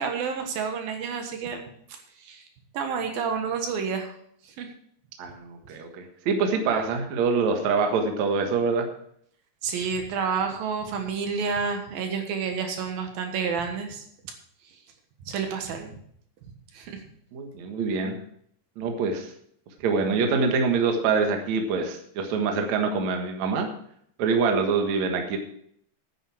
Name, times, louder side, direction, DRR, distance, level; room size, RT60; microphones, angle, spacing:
voice 1, 0.0-1.7 2.2-2.4 2.7-4.1 4.4-4.7 9.6-14.1 15.3-15.8 16.7-17.0, right 6 dB, 75° right, 5 dB, 3.2 m, -29 dB
voice 2, 5.2-8.9 15.8-15.9 17.3-18.2 18.8-19.3 19.8-23.7 24.2-25.4, right 4 dB, 55° right, 4 dB, 2.5 m, -25 dB
10.0 x 9.3 x 6.2 m, 0.66 s
omnidirectional pair, 4.3 m